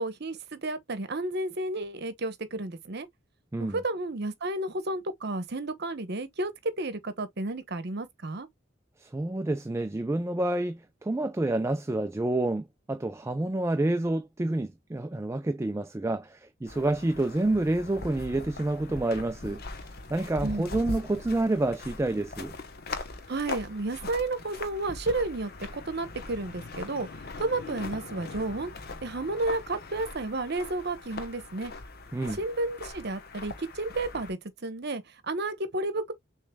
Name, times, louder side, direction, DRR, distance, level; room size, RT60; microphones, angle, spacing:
voice 1, 0.0-3.1 3.6-6.5 6.8-8.5 20.4-20.7 23.3-27.1 27.4-28.7 29.0-31.7 32.2-36.1, right 2 dB, 55° right, 1.0 m, -32 dB
voice 2, 9.0-19.6 20.1-22.5 32.1-32.4, right 2 dB, 15° right, 0.3 m, -28 dB
sound 1, 16.7-34.3, left 3 dB, 50° left, 0.9 m, -41 dB
6.6 x 3.2 x 2.2 m
head